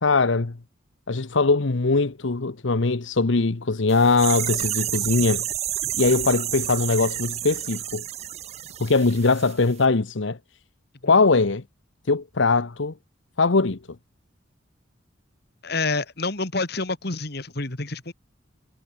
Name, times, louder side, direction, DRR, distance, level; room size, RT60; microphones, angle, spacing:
voice 1, 0.0-0.6 1.1-5.5 6.0-8.0 8.8-10.4 11.0-11.6 12.1-12.9 13.4-13.8, left 3 dB, 70° left, 0.9 m, -21 dB
sound 1, 3.9-9.5 9.8-9.9, right 12 dB, 35° right, 0.4 m, -30 dB
voice 2, 15.6-18.1, left 3 dB, 55° left, 2.4 m, -28 dB
head